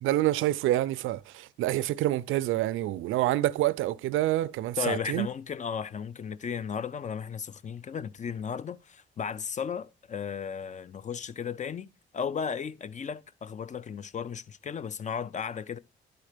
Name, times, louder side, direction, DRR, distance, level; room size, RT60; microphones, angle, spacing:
voice 1, 0.0-5.3, right 15 dB, 85° right, 0.4 m, -27 dB
voice 2, 4.8-15.8, left 7 dB, 35° left, 0.5 m, -35 dB
11.0 x 4.3 x 5.0 m
cardioid pair, 90°, 20 cm